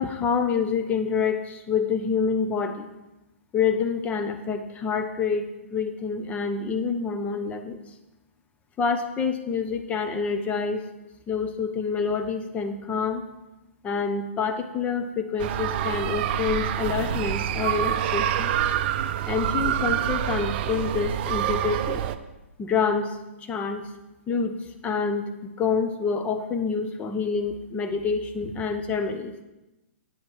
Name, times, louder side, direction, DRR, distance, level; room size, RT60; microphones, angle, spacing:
voice 1, 0.0-2.9 3.5-7.8 8.8-10.8 11.3-13.2 13.8-18.5 19.3-22.0 22.6-23.9 24.3-24.6 24.8-29.3, left 5 dB, 20° left, 8 dB, 0.8 m, -27 dB
sound 1, 15.4-22.2, right 11 dB, 45° right, 0.5 m, -26 dB
8.8 x 7.4 x 4.7 m, 1.0 s
hypercardioid pair, 125°, 7 cm